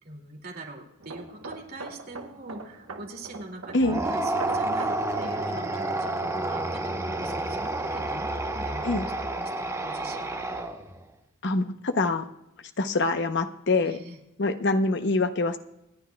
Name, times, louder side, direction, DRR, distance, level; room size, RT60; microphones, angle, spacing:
voice 1, 0.0-10.5 13.8-14.2, right 2 dB, 45° right, 1 dB, 2.4 m, -43 dB
sound 1, 1.0-8.5 8.8-9.1, right 3 dB, 75° right, 1.0 m, -43 dB
sound 2, 3.8-11.0, right 2 dB, 15° right, 0.9 m, -30 dB
voice 2, 11.4-12.3 12.8-14.0 14.4-15.6, left 2 dB, 55° left, 9 dB, 0.8 m, -25 dB
27.5 x 9.9 x 2.3 m, 0.87 s
head